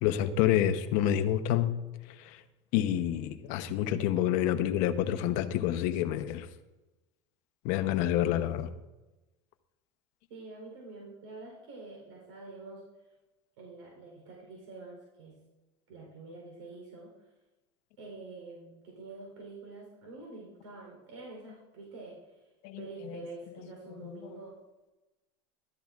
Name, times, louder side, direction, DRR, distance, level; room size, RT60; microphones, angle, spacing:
voice 1, 0.0-1.7 2.1-2.4 2.7-6.5 7.6-8.7 22.6-23.2 24.0-24.1, left 11 dB, 60° left, 9 dB, 0.9 m, -28 dB
voice 2, 10.3-13.1 13.6-15.4 15.9-17.1 18.0-22.5 22.8-24.6, right 3 dB, 85° right, -1 dB, 3.9 m, -47 dB
14.5 x 12.5 x 2.5 m, 1.1 s
supercardioid pair, 120°, 15 cm